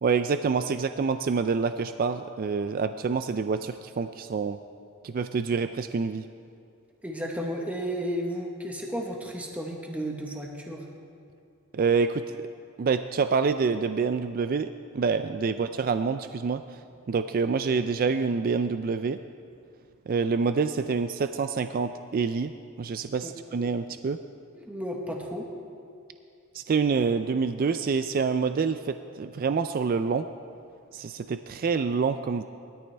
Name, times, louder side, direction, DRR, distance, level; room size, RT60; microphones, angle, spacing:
voice 1, 0.0-4.6 5.0-6.2 11.7-12.2 12.8-14.7 14.9-16.8 17.1-19.2 20.1-22.5 22.8-24.2 26.5-30.3 30.9-32.4, right 5 dB, 40° right, 10 dB, 0.3 m, -27 dB
voice 2, 7.0-10.8 23.2-23.3 24.5-25.5, equal, 5° right, 0 dB, 1.1 m, -33 dB
20.0 x 13.5 x 3.4 m, 2.5 s
head